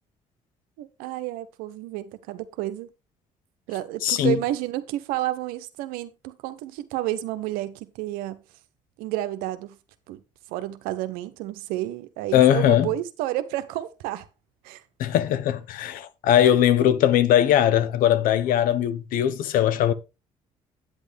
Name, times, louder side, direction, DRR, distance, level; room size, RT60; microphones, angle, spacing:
voice 1, 0.8-2.9 3.7-8.4 9.0-9.8 10.1-10.2 10.5-14.3 14.6-14.8, right 14 dB, 85° right, 0.9 m, -30 dB
voice 2, 4.0-4.4 12.3-12.9 15.0-19.9, left 11 dB, 75° left, 0.9 m, -20 dB
9.0 x 8.3 x 3.5 m
supercardioid pair, 70°, 14 cm